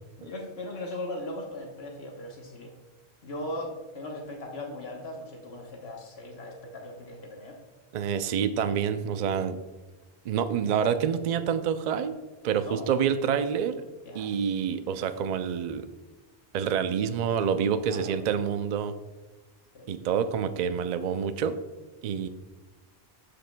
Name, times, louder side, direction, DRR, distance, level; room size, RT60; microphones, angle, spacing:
voice 1, 0.2-2.7 3.2-7.6 12.6-12.9 14.1-14.3 15.0-15.1 17.8-18.2 19.7-19.9, left 1 dB, 70° left, 1 dB, 1.2 m, -38 dB
voice 2, 7.9-9.6 10.2-12.2 12.4-13.8 14.1-15.9 16.5-18.9 19.9-21.6 22.0-22.3, right 7 dB, 55° right, 10 dB, 0.5 m, -27 dB
12.5 x 5.0 x 2.2 m, 1.2 s
omnidirectional pair, 1.1 m